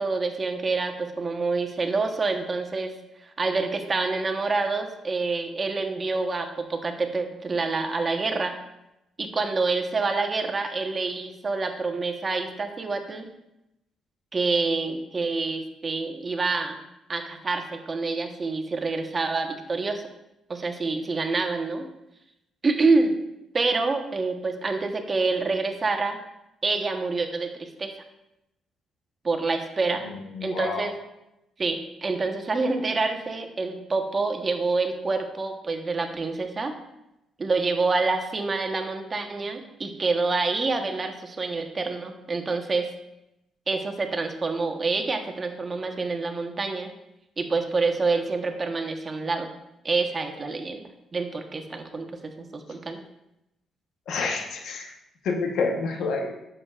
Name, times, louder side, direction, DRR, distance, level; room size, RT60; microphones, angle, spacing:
voice 1, 0.0-2.9 3.4-8.6 9.2-13.3 14.3-16.8 17.1-20.0 20.5-21.9 22.6-23.2 23.5-26.2 26.6-27.9 29.2-30.1 30.4-31.0 31.6-36.7 37.4-42.9 43.7-46.9 47.4-49.5 49.8-52.1 52.4-53.0, right 3 dB, 35° right, 5 dB, 1.1 m, -27 dB
voice 2, 30.3-30.9 54.1-54.9 55.2-56.3, left 4 dB, 75° left, 2 dB, 1.1 m, -28 dB
11.0 x 7.0 x 2.4 m, 0.88 s
cardioid pair, 90°, 0 cm